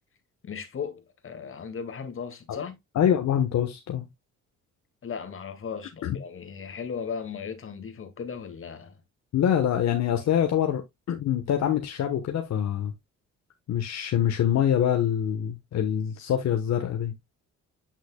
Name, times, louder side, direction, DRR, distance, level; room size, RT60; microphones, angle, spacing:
voice 1, 0.4-2.8 5.0-9.0, left 6 dB, 45° left, 2.1 m, -36 dB
voice 2, 2.9-4.1 6.0-6.2 9.3-10.8 11.1-12.9 13.7-17.1, left 9 dB, 65° left, 1.2 m, -25 dB
8.5 x 6.2 x 2.2 m
cardioid pair, 90°, 30 cm